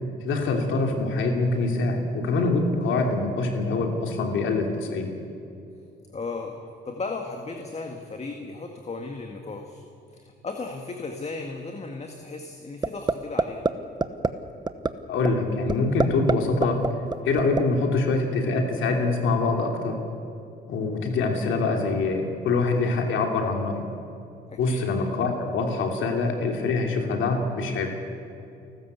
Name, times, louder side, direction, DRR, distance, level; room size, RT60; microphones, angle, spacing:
voice 1, 0.2-5.1 15.1-16.8 17.2-20.0 20.7-23.8 24.6-27.9, left 3 dB, 80° left, 3 dB, 2.9 m, -24 dB
voice 2, 6.1-9.8 10.1-13.7 24.5-24.9, left 3 dB, 35° left, 3 dB, 1.9 m, -35 dB
sound 1, 12.8-13.1 13.4-13.7 14.0-14.3 14.7-14.9 15.2-15.3 15.7-16.3 16.6-17.6, right 4 dB, 20° right, 1.0 m, -22 dB
29.0 x 13.5 x 8.3 m, 2.7 s
cardioid pair, 90°, 20 cm